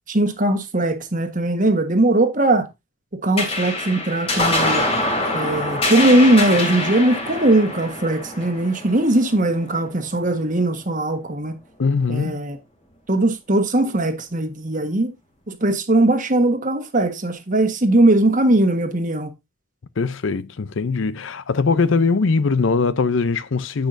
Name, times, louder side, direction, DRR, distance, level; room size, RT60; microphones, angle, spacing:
voice 1, 0.1-2.7 3.1-4.9 5.3-11.6 12.1-12.6 13.1-15.1 15.5-19.3, right 1 dB, 40° right, 1.3 m, -19 dB
sound 1, 3.4-10.1, left 2 dB, 25° left, 2.7 m, -25 dB
voice 2, 11.8-12.4 20.0-23.9, left 4 dB, 65° left, 0.5 m, -21 dB
10.5 x 8.3 x 2.6 m
head